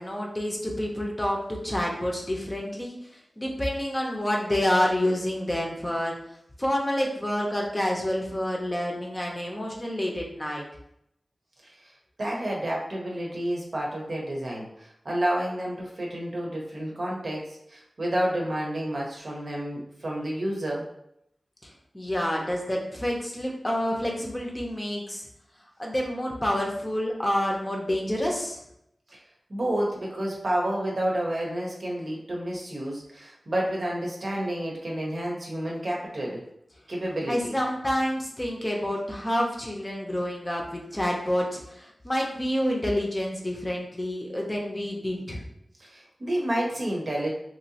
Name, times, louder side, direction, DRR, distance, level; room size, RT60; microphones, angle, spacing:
voice 1, 0.0-3.0 3.4-6.2 6.6-10.6 21.6-25.3 25.8-28.6 37.3-45.4, equal, 25° left, -1 dB, 0.6 m, -28 dB
voice 2, 12.2-20.8 29.1-29.2 29.5-36.4 36.9-37.6 45.8-47.3, right 1 dB, 55° right, -2 dB, 0.8 m, -30 dB
3.0 x 2.7 x 2.8 m, 0.77 s
wide cardioid pair, 90°, 0 cm